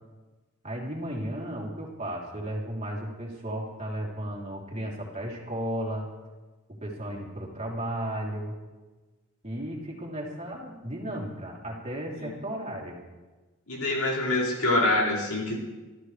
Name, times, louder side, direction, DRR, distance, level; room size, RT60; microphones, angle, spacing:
voice 1, 0.6-6.1 6.8-8.5 9.4-13.0, right 1 dB, 30° right, -3 dB, 3.1 m, -34 dB
voice 2, 13.7-15.6, left 2 dB, 80° left, -5 dB, 5.0 m, -25 dB
28.0 x 13.5 x 3.3 m, 1.2 s
head